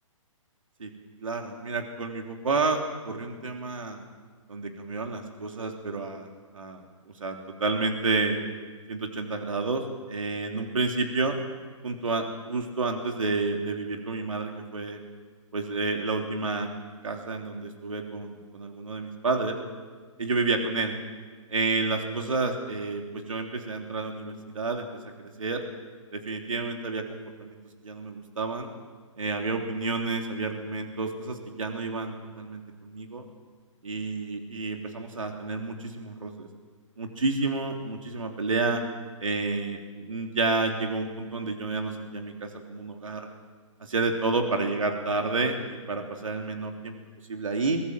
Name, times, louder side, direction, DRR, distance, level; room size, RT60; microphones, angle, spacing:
voice 1, 1.2-4.0 4.5-6.3 6.5-6.8 7.2-8.4 8.9-9.8 10.1-11.4 11.8-15.0 15.5-16.7 17.0-19.6 20.2-20.9 21.5-24.9 25.2-25.6 26.1-27.6 27.8-28.7 29.2-33.2 33.8-36.5 37.0-38.8 39.2-43.2 43.8-47.0 47.3-47.8, right 3 dB, 80° right, 3 dB, 3.3 m, -30 dB
22.5 x 21.0 x 7.6 m, 1.5 s
figure-of-eight pair, 135°, 17 cm